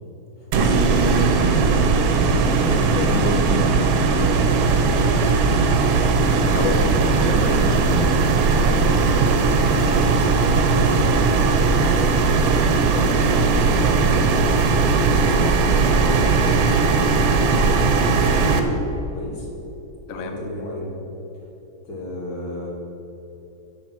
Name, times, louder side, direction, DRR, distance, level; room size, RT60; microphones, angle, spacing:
voice 1, 0.4-1.3 4.8-5.3 6.3-6.7 7.2-7.9 8.6-11.5 12.5-15.6 15.8-17.6 18.0-18.8 19.1-19.5 20.1-20.9 21.8-22.7, left 1 dB, 85° left, -3 dB, 3.0 m, -33 dB
sound 1, 0.5-18.6, right 4 dB, 85° right, 1.7 m, -18 dB
voice 2, 2.7-3.7 6.4-7.7 9.9-10.0 20.1-20.4, left 4 dB, 55° left, 5 dB, 1.0 m, -28 dB
11.5 x 7.1 x 6.1 m, 3.0 s
omnidirectional pair, 2.1 m